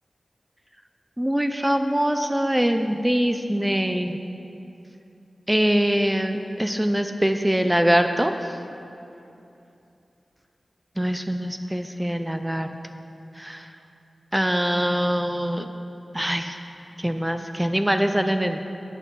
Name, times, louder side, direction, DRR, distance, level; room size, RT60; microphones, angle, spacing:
voice 1, 1.2-4.2 5.5-8.3 11.0-12.7 13.4-13.7 14.3-15.7 16.1-16.6 17.0-18.6, equal, 10° right, 7 dB, 0.3 m, -23 dB
8.2 x 6.8 x 5.4 m, 2.7 s
wide cardioid pair, 105°, 0 cm